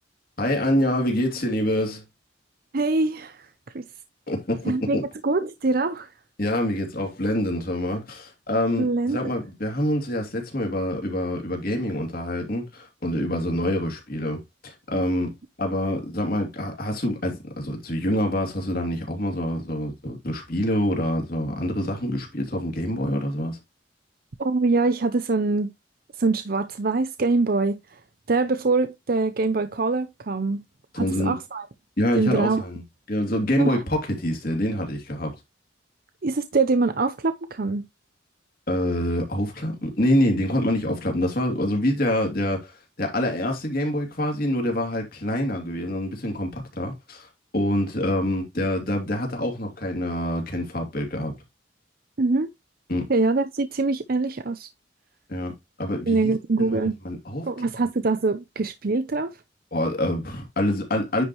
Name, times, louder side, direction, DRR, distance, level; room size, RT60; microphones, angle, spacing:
voice 1, 0.4-2.0 4.3-5.1 6.4-23.6 30.9-31.4 32.0-32.8 33.1-35.4 38.7-42.7 43.0-47.3 47.5-51.3 52.9-53.1 55.3-55.5 55.8-56.3 56.6-56.8 57.0-57.5 59.7-61.2, left 1 dB, 50° left, 2.8 m, -26 dB
voice 2, 2.7-3.4 3.7-3.8 4.6-6.1 8.8-9.2 24.4-25.7 26.2-27.8 28.3-30.6 31.0-31.7 32.2-32.6 33.6-33.8 36.2-37.9 52.2-52.5 53.1-54.7 56.1-56.9 57.5-59.3, right 3 dB, 50° right, 0.6 m, -24 dB
9.9 x 4.9 x 3.1 m
head